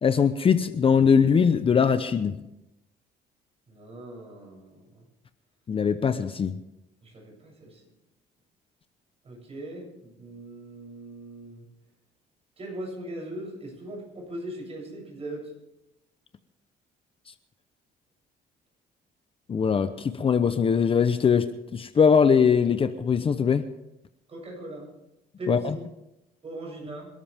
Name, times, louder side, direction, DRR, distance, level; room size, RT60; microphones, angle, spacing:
voice 1, 0.0-2.4 5.7-6.5 19.5-23.6 25.5-25.8, left 6 dB, 35° left, 10 dB, 0.8 m, -21 dB
voice 2, 3.7-5.0 7.0-7.8 9.2-11.7 12.6-15.5 24.3-24.9 25.4-25.8 26.4-27.1, right 1 dB, 35° right, -1 dB, 8.0 m, -39 dB
27.0 x 12.5 x 3.6 m, 0.91 s
cardioid pair, 110°, 17 cm